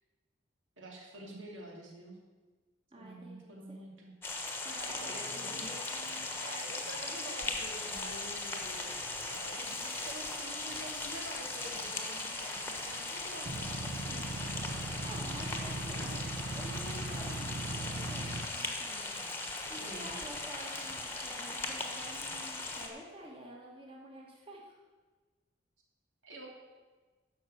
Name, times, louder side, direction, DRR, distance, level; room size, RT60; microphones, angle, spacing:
voice 1, 0.8-2.2 3.0-4.1 4.6-5.8 6.4-13.8 15.3-16.3 19.8-20.1 26.2-26.5, right 1 dB, 85° right, -1 dB, 2.7 m, -48 dB
voice 2, 2.9-3.8 4.6-5.7 14.1-14.3 15.0-16.1 16.5-19.1 19.7-24.8, right 1 dB, 30° right, -1 dB, 1.6 m, -49 dB
sound 1, 4.2-22.9, left 2 dB, 10° left, 1.2 m, -38 dB
sound 2, 4.9-10.1, left 2 dB, 65° left, 0.9 m, -54 dB
sound 3, 13.5-18.5, right 2 dB, 60° right, 1.0 m, -39 dB
12.0 x 5.7 x 7.8 m, 1.3 s
head